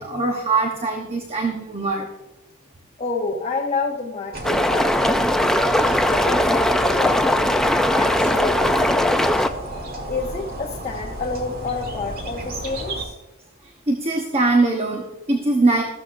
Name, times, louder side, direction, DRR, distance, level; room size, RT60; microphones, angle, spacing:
voice 1, 0.0-2.1 13.9-15.8, right 3 dB, 30° right, 2 dB, 1.0 m, -21 dB
voice 2, 3.0-5.3 6.0-7.5 7.9-9.4 10.1-13.1, left 4 dB, 30° left, -1 dB, 0.9 m, -29 dB
sound 1, 4.3-13.0, right 1 dB, 45° right, 1.7 m, -33 dB
Small river, 4.4-9.5, left 1 dB, ahead, 0.4 m, -19 dB
14.0 x 12.5 x 2.6 m, 1.0 s
head